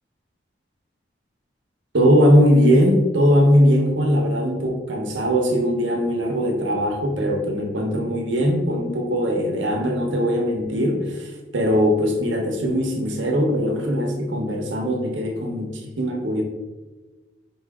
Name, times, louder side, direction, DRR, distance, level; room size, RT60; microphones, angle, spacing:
voice 1, 1.9-16.4, equal, 85° right, 2 dB, 0.7 m, -20 dB
4.6 x 2.7 x 3.4 m, 1.2 s
head